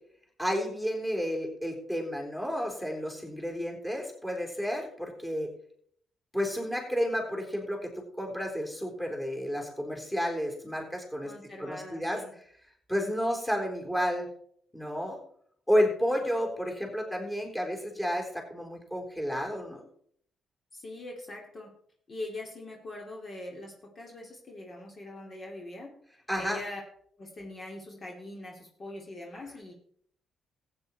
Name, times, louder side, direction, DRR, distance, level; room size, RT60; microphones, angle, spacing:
voice 1, 0.4-5.5 6.3-7.9 8.2-11.3 11.6-12.2 12.9-14.3 14.7-15.2 15.7-19.8 26.3-26.6, equal, 10° left, 1 dB, 3.7 m, -31 dB
voice 2, 11.2-12.3 20.7-21.7 22.1-25.9 26.4-26.8 27.2-29.7, left 1 dB, 40° left, 0 dB, 2.9 m, -42 dB
15.0 x 8.9 x 4.3 m, 0.63 s
cardioid pair, 90°, 0 cm